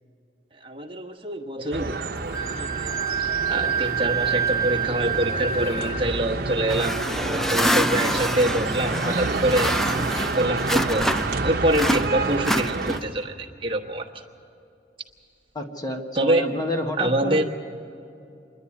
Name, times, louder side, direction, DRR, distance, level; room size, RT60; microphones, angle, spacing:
voice 1, 0.5-2.9 3.5-7.0 7.2-9.7 10.1-11.1 11.4-14.1 16.1-16.4 17.0-17.4, right 1 dB, 30° right, 1 dB, 1.3 m, -25 dB
sound 1, 1.7-13.0, right 3 dB, 60° right, 1.0 m, -29 dB
Wind instrument woodwind instrument, 2.3-6.0, right 7 dB, 65° left, 1.5 m, -27 dB
sound 2, 6.7-11.4 11.7-13.2, equal, ahead, 0.4 m, -26 dB
voice 2, 15.5-17.4, left 1 dB, 20° left, 3 dB, 1.2 m, -29 dB
26.5 x 11.0 x 9.6 m, 2.6 s
head